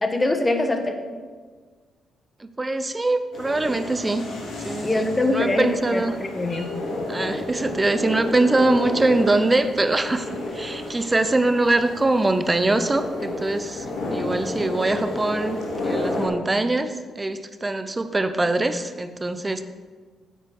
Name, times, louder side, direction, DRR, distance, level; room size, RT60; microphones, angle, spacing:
voice 1, 0.0-0.9 4.8-6.7, left 2 dB, 25° left, 6 dB, 1.4 m, -23 dB
voice 2, 2.4-4.3 4.6-6.2 7.1-19.6, right 2 dB, 25° right, 11 dB, 0.8 m, -23 dB
sound 1, 3.3-16.3, left 2 dB, 70° left, 2.6 m, -31 dB
9.1 x 8.7 x 4.8 m, 1.5 s
hypercardioid pair, 45°, 0 cm